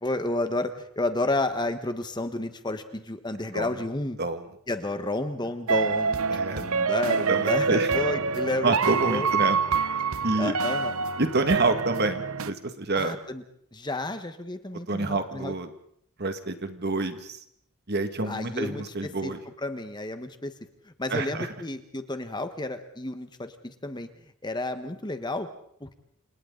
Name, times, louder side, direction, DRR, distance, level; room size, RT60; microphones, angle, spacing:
voice 1, 0.0-4.2 4.7-6.2 6.6-9.3 10.4-10.9 12.9-13.4 13.7-15.5 18.3-19.3 19.6-20.6 20.8-24.1 24.4-25.5 25.8-25.9, left 2 dB, 20° left, 9 dB, 1.4 m, -31 dB
sound 1, 5.7-12.5, right 5 dB, 75° right, 0.9 m, -26 dB
voice 2, 6.3-6.6 7.3-7.9 8.6-9.6 10.2-10.5 11.2-13.2 14.9-15.7 16.2-17.4 17.9-19.4 21.1-21.5, right 2 dB, 50° right, 8 dB, 2.1 m, -27 dB
29.5 x 27.5 x 4.0 m, 0.66 s
head